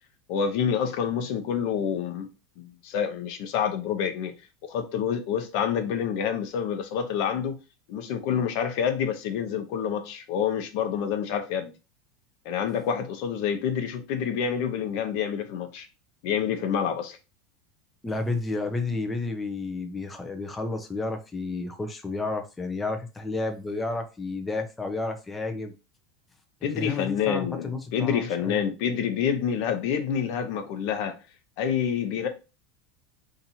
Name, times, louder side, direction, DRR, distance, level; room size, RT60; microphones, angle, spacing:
voice 1, 0.3-2.3 2.6-4.3 4.7-7.6 7.9-11.7 12.4-15.9 16.2-17.2 26.6-31.2 31.6-32.3, left 8 dB, 60° left, 0.7 m, -27 dB
voice 2, 18.0-25.7 26.7-28.6, left 3 dB, 10° left, 0.5 m, -31 dB
2.8 x 2.5 x 4.2 m
supercardioid pair, 130°, 0 cm